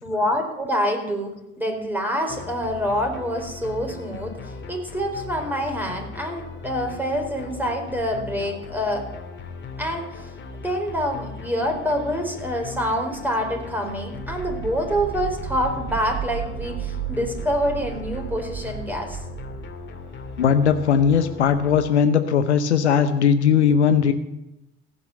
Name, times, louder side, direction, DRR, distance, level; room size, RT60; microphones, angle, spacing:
voice 1, 0.0-9.1 9.8-10.3 10.6-19.2, equal, 5° right, 2 dB, 4.4 m, -26 dB
sound 1, 2.3-21.8, left 4 dB, 35° left, 2.4 m, -38 dB
sound 2, 14.2-20.9, right 12 dB, 40° right, 1.0 m, -34 dB
voice 2, 20.4-24.1, left 7 dB, 85° left, 10 dB, 0.8 m, -18 dB
15.5 x 7.0 x 8.9 m, 0.90 s
figure-of-eight pair, 60°, 33 cm